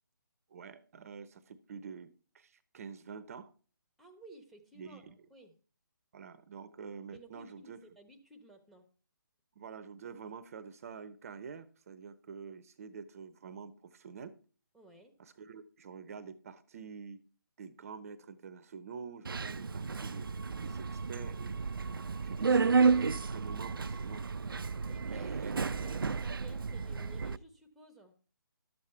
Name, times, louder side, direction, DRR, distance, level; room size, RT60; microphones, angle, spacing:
voice 1, 0.5-3.5 4.8-5.1 6.1-7.8 9.6-14.4 15.2-17.2 17.6-20.3 20.6-21.6 22.2-24.2 25.1-25.5, right 6 dB, 40° right, 13 dB, 0.7 m, -47 dB
voice 2, 4.0-5.5 7.1-8.9 14.7-15.1 24.9-28.1, right 1 dB, ahead, 4 dB, 1.0 m, -56 dB
Subway metro underground, 19.2-27.4, right 5 dB, 80° right, 0.5 m, -32 dB
12.0 x 7.5 x 4.5 m, 0.39 s
figure-of-eight pair, 150°, 11 cm